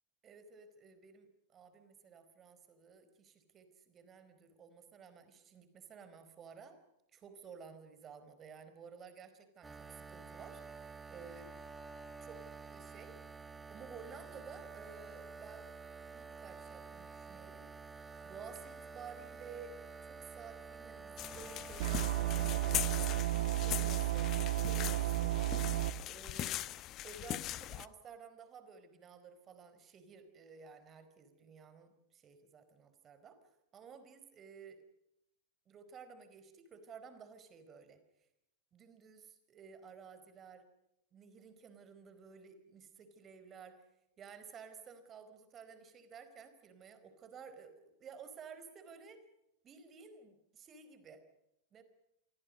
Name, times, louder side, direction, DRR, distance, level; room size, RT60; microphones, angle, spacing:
voice 1, 0.2-6.8 7.1-11.7 12.2-13.2 13.7-15.7 16.1-17.7 18.2-25.4 26.1-26.6 27.0-33.4 33.7-34.8 35.7-38.0 38.7-40.6 41.1-43.9 44.2-49.2 49.6-51.2 51.7-51.8, right 6 dB, 30° right, 10 dB, 4.6 m, -54 dB
sound 1, 9.6-23.2, right 4 dB, 15° right, 2.5 m, -50 dB
sound 2, 21.2-27.9, left 14 dB, 40° left, 1.0 m, -41 dB
sound 3, 21.8-25.9, right 16 dB, 65° right, 1.7 m, -33 dB
29.0 x 24.0 x 5.4 m, 0.84 s
figure-of-eight pair, 90°, 0 cm